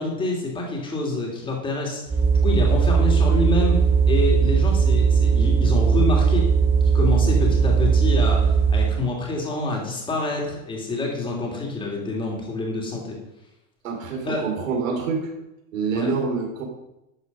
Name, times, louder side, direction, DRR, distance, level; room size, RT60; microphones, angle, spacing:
voice 1, 0.0-2.0 2.4-3.8 4.1-6.5 6.9-13.2 14.2-14.5 15.9-16.1, left 3 dB, 10° left, -1 dB, 2.7 m, -27 dB
sound 1, 2.1-9.0, right 6 dB, 5° right, 0.4 m, -18 dB
voice 2, 13.8-15.3 15.7-16.6, right 5 dB, 80° right, 2 dB, 4.0 m, -26 dB
12.0 x 8.0 x 5.5 m, 0.90 s
supercardioid pair, 155°, 39 cm